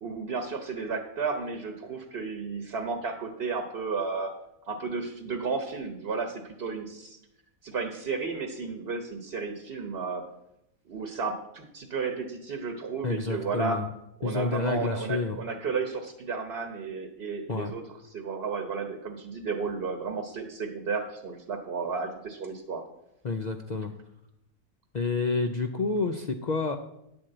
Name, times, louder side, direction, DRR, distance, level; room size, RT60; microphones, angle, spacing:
voice 1, 0.0-4.3 4.7-7.2 7.6-10.2 10.9-13.8 14.2-17.8 18.1-22.8, right 4 dB, 50° right, 5 dB, 1.1 m, -33 dB
voice 2, 13.0-13.9 14.2-15.4 17.5-17.7 23.2-23.9 24.9-26.8, left 4 dB, 75° left, 5 dB, 0.4 m, -29 dB
10.0 x 4.4 x 7.7 m, 0.83 s
omnidirectional pair, 1.5 m